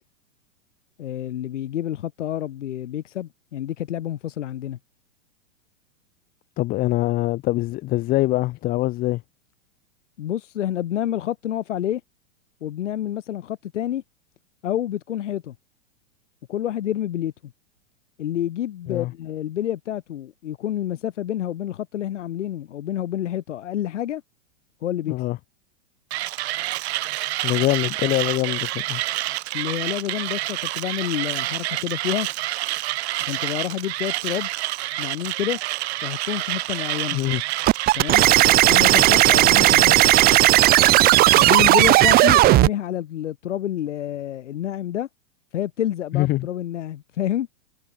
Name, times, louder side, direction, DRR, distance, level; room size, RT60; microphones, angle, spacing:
voice 1, 1.0-4.8 10.2-12.0 12.6-14.0 14.6-15.5 16.5-17.5 18.2-24.2 24.8-25.2 29.5-32.3 33.2-34.5 35.0-35.6 36.0-37.2 37.9-38.2 38.6-40.0 41.3-45.1 45.5-47.5, left 11 dB, 75° left, 3.0 m, -28 dB
voice 2, 6.6-9.2 18.9-19.1 25.1-25.4 27.4-29.0 37.1-37.4 46.1-46.5, left 18 dB, 25° left, 0.6 m, -23 dB
Mechanisms, 26.1-40.6, right 16 dB, 60° right, 1.9 m, -28 dB
sound 1, 37.7-42.7, right 16 dB, 25° right, 0.8 m, -15 dB
hypercardioid pair, 130°, 36 cm